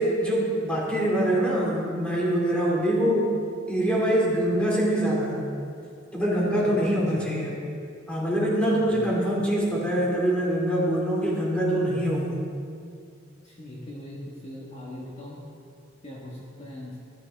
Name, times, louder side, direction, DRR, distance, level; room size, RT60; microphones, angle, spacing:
voice 1, 0.0-3.3 3.7-5.5 6.1-7.6 8.1-12.4, right 1 dB, 5° left, -5 dB, 2.7 m, -24 dB
voice 2, 6.6-7.2 8.8-9.1 13.4-15.4 16.0-17.0, left 1 dB, 35° left, -5 dB, 1.7 m, -40 dB
14.0 x 12.5 x 3.6 m, 2.4 s
head